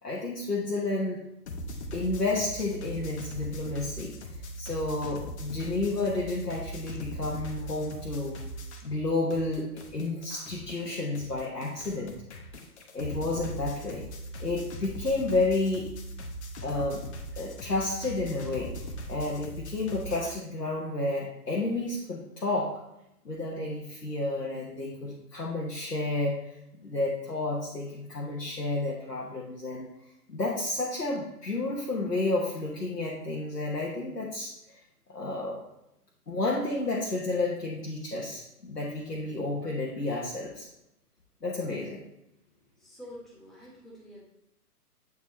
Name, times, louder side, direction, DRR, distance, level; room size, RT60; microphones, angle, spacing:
voice 1, 0.0-1.2 1.9-4.1 4.6-8.4 8.8-12.1 12.9-14.0 14.4-15.9 16.6-17.0 17.4-18.7 19.1-22.8 23.2-29.9 30.3-34.8 35.1-35.6 36.3-40.7 41.4-42.0, left 2 dB, 90° left, -4 dB, 1.3 m, -31 dB
sound 1, 1.5-9.0 9.3-20.3, equal, 45° left, 1.0 m, -40 dB
voice 2, 42.7-44.2, equal, ahead, -7 dB, 1.1 m, -47 dB
8.0 x 4.8 x 3.2 m, 0.86 s
figure-of-eight pair, 130°, 47 cm